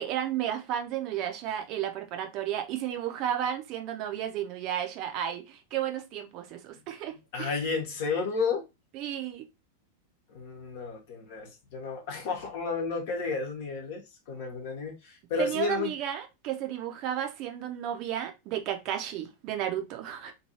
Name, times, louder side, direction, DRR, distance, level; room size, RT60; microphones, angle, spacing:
voice 1, 0.0-7.5 8.9-9.5 15.4-20.3, right 10 dB, 40° right, 0.6 m, -33 dB
voice 2, 7.3-8.6 10.3-15.9, left 4 dB, 50° left, 1.1 m, -32 dB
3.1 x 2.6 x 2.8 m
figure-of-eight pair, 90°, 0 cm